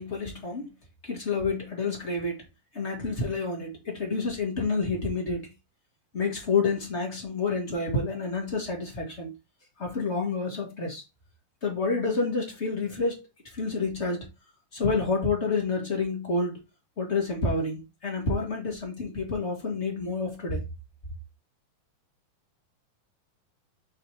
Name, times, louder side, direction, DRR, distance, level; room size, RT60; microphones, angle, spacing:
voice 1, 0.0-0.7 1.1-2.4 2.7-5.5 6.1-9.3 9.8-11.0 11.6-13.3 13.5-14.3 14.7-16.6 17.0-20.6, left 3 dB, 50° left, 0.8 m, -29 dB
5.9 x 5.7 x 3.3 m
omnidirectional pair, 4.3 m